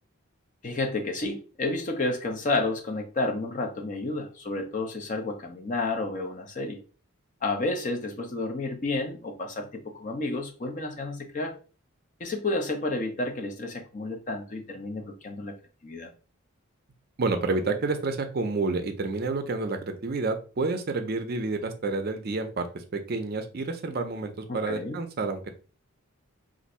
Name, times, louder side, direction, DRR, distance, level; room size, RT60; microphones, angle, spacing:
voice 1, 0.6-6.8 7.4-11.5 12.2-15.5 15.8-16.1 24.5-25.0, left 2 dB, 35° left, 4 dB, 0.5 m, -31 dB
voice 2, 17.2-25.5, right 3 dB, 45° right, 7 dB, 0.4 m, -29 dB
2.6 x 2.5 x 4.2 m, 0.36 s
head